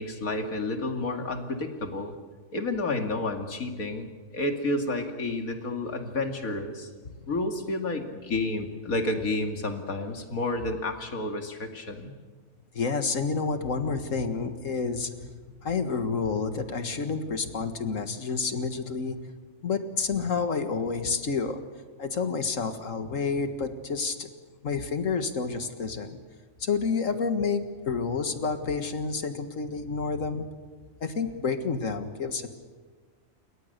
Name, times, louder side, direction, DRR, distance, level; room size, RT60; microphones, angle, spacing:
voice 1, 0.0-2.2 2.5-6.9 7.3-12.2, left 2 dB, 90° left, 4 dB, 2.7 m, -30 dB
voice 2, 12.7-15.3 15.6-19.2 19.6-21.6 22.0-24.3 24.6-26.2 26.6-30.5 31.0-32.5, left 5 dB, 70° left, 8 dB, 2.1 m, -29 dB
28.5 x 22.5 x 6.7 m, 1.4 s
omnidirectional pair, 1.4 m